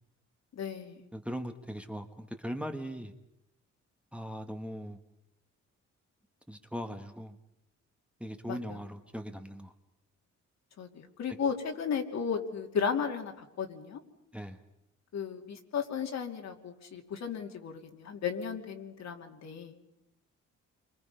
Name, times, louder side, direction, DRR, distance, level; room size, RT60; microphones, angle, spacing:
voice 1, 0.5-1.1 8.5-8.8 10.8-14.0 15.1-19.8, left 6 dB, 65° left, 3 dB, 2.8 m, -35 dB
voice 2, 1.1-3.1 4.1-5.0 6.5-7.4 8.2-9.7 14.3-14.6, equal, 5° right, 6 dB, 1.2 m, -39 dB
30.0 x 24.5 x 5.5 m, 0.83 s
cardioid pair, 150°, 29 cm